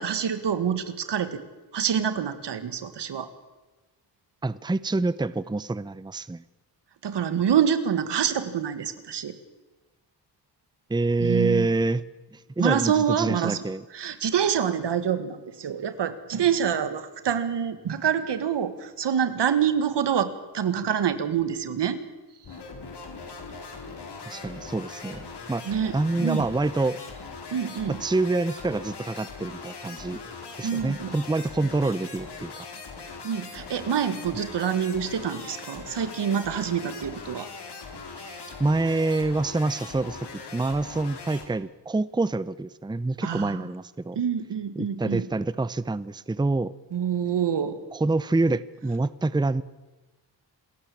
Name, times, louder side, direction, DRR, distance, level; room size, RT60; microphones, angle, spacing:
voice 1, 0.0-1.4 1.7-3.3 7.0-9.4 11.2-11.7 12.6-13.6 13.9-22.0 25.7-26.0 26.2-26.5 27.5-28.0 30.6-31.1 33.1-37.5 38.2-38.3 43.2-43.7 44.2-45.3 46.9-47.8, right 8 dB, 75° right, 12 dB, 1.8 m, -26 dB
voice 2, 4.4-6.4 10.9-12.0 12.3-13.8 24.3-27.0 27.9-30.2 30.6-32.7 38.6-44.2 44.8-46.7 47.9-49.6, right 2 dB, 10° right, 17 dB, 0.7 m, -26 dB
sound 1, 22.4-41.5, left 4 dB, 70° left, 4.1 m, -41 dB
27.0 x 14.0 x 8.6 m, 1.2 s
cardioid pair, 75°, 41 cm